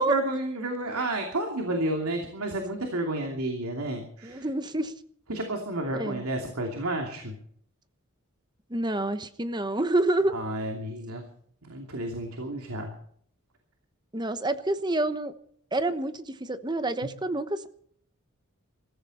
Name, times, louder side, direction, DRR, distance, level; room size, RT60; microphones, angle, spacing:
voice 1, 0.0-4.5 5.3-7.3 10.3-11.2 11.6-12.9, right 1 dB, 85° right, 3 dB, 2.8 m, -31 dB
voice 2, 4.2-4.9 5.9-6.2 8.7-10.3 14.1-15.3 15.7-17.7, right 2 dB, 20° right, 11 dB, 1.0 m, -28 dB
22.0 x 14.5 x 4.3 m, 0.65 s
head